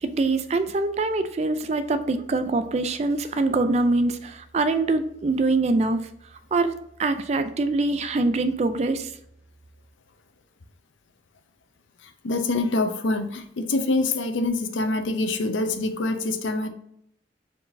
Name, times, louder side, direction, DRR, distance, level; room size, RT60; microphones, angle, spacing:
voice 1, 0.0-6.0 6.5-9.1, right 3 dB, 35° right, 10 dB, 0.3 m, -24 dB
voice 2, 12.2-16.7, left 2 dB, 85° left, 7 dB, 0.6 m, -25 dB
4.6 x 3.8 x 2.6 m, 0.75 s
head